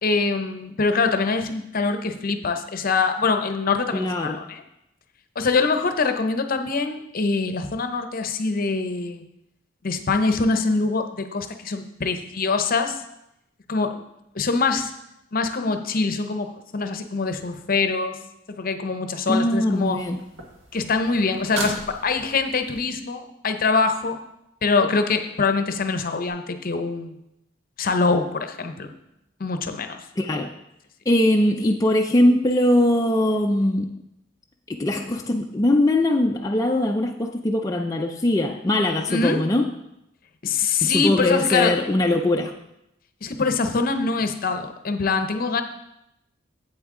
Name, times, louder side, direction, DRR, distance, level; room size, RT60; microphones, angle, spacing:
voice 1, 0.0-4.6 5.4-9.2 9.8-13.0 13.7-14.0 14.3-14.9 15.3-18.2 18.5-20.0 20.7-24.2 24.6-27.1 27.8-28.9 29.4-30.0 39.1-39.4 40.4-41.8 43.2-45.6, left 4 dB, 50° left, 8 dB, 0.7 m, -24 dB
voice 2, 3.9-4.4 19.3-20.2 30.2-30.5 31.1-34.0 34.7-39.7 40.8-42.5, left 1 dB, 20° left, 1 dB, 0.4 m, -21 dB
sound 1, 19.7-22.8 26.3-26.4, right 2 dB, 80° right, 1.5 m, -36 dB
8.3 x 7.9 x 3.7 m, 0.84 s
head